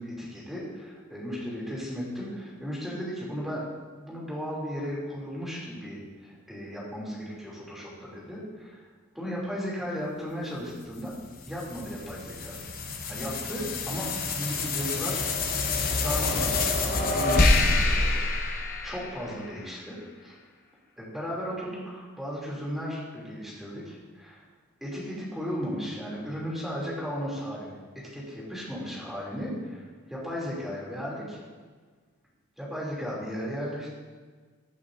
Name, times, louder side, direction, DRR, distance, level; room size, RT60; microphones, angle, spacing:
voice 1, 0.0-3.7 4.0-8.9 9.1-11.1 11.4-12.6 13.1-15.2 15.6-15.7 16.0-18.6 18.8-20.3 21.0-24.4 24.8-27.8 28.1-31.4 32.6-33.9, equal, ahead, -6 dB, 2.7 m, -35 dB
sound 1, 10.9-19.5, left 3 dB, 40° left, 1.0 m, -27 dB
15.5 x 8.3 x 2.6 m, 1.5 s
head